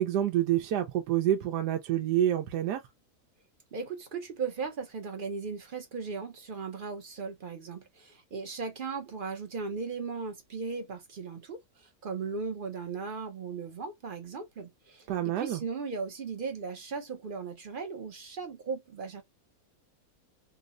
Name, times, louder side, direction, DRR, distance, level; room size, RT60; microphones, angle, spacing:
voice 1, 0.0-2.8 15.1-15.6, right 11 dB, 85° right, 1.2 m, -27 dB
voice 2, 3.7-19.2, right 4 dB, 50° right, 0.6 m, -37 dB
3.7 x 2.1 x 2.4 m
omnidirectional pair, 1.7 m